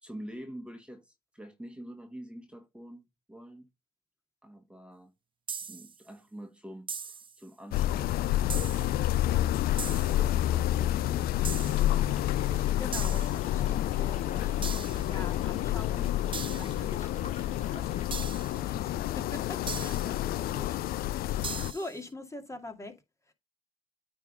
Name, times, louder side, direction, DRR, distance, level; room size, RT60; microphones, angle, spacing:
voice 1, 0.0-3.7 4.4-5.1 5.7-9.6 9.9-12.0 20.0-20.2 20.5-20.7, right 1 dB, 5° right, 1.8 m, -47 dB
sound 1, 5.5-6.0 6.9-7.4 8.5-9.0 9.8-10.3 11.5-12.0 12.9-13.5 14.6-15.2 16.3-16.9 18.1-18.6 19.7-20.2 21.4-22.0, right 6 dB, 30° right, 0.5 m, -39 dB
sound 2, 7.7-21.7, left 13 dB, 70° left, 0.4 m, -29 dB
sound 3, 11.7-18.1, left 5 dB, 45° left, 2.9 m, -45 dB
voice 2, 12.8-16.1 16.5-20.8 21.1-22.9 23.3-23.4, left 2 dB, 20° left, 2.3 m, -44 dB
9.1 x 3.7 x 5.2 m
supercardioid pair, 60°, 16 cm